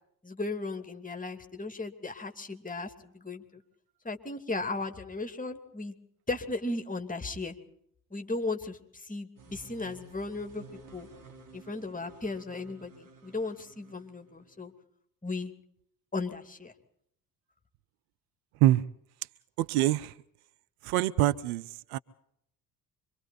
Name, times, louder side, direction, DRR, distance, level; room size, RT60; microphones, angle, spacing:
voice 1, 0.2-3.6 4.0-5.9 6.3-7.6 8.1-10.6 10.9-11.1 11.5-14.7 15.2-15.5 16.1-16.7, left 3 dB, 15° left, 2.7 m, -36 dB
sound 1, 9.4-14.7, right 4 dB, 40° right, 3.4 m, -53 dB
voice 2, 19.6-20.1 20.8-22.0, right 14 dB, 65° right, 0.7 m, -25 dB
26.0 x 24.0 x 4.2 m
figure-of-eight pair, 45°, 48 cm